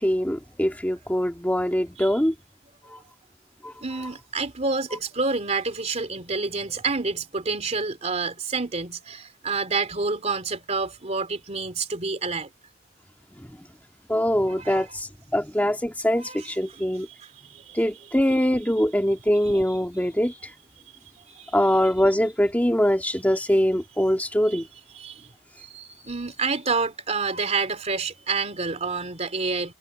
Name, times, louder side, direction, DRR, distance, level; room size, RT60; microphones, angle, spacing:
voice 1, 0.0-2.3 3.6-3.7 14.1-17.1 17.7-20.4 21.5-24.6, equal, 10° left, 2.0 m, -23 dB
voice 2, 3.8-12.5 14.5-14.9 16.2-16.8 17.2-17.8 19.4-20.1 21.3-21.5 24.5-24.6 24.9-25.3 25.7-29.7, right 4 dB, 35° right, 3.0 m, -29 dB
head